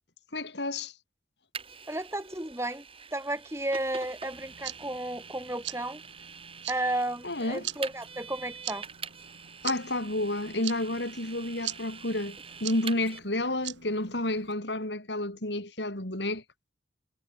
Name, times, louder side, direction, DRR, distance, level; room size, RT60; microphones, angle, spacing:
voice 1, 0.3-0.9 7.2-7.7 9.6-16.4, left 1 dB, 70° left, 6.0 m, -30 dB
Vehicle, 1.5-13.2, right 6 dB, 30° right, 5.4 m, -45 dB
voice 2, 1.9-2.8 3.1-6.0 6.7-8.8, right 1 dB, 15° right, 3.7 m, -33 dB
sound 1, 4.3-14.5, right 13 dB, 80° right, 4.8 m, -43 dB
head